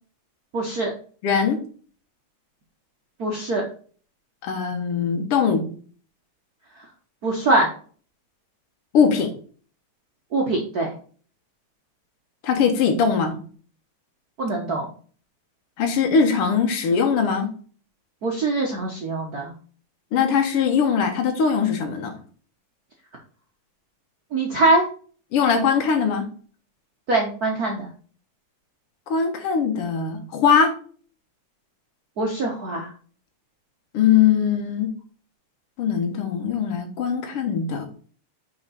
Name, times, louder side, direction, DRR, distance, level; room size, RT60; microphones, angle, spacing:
voice 1, 0.5-0.9 3.2-3.6 7.2-7.7 10.3-10.9 14.4-14.9 18.2-19.5 24.3-24.8 27.1-27.9 32.2-32.9, right 2 dB, 80° right, -1 dB, 0.8 m, -22 dB
voice 2, 1.2-1.6 4.4-5.8 8.9-9.3 12.4-13.4 15.8-17.5 20.1-22.1 25.3-26.3 29.1-30.7 33.9-34.9 35.8-37.9, left 6 dB, 55° left, 4 dB, 2.0 m, -21 dB
5.6 x 5.0 x 4.1 m, 0.42 s
omnidirectional pair, 3.4 m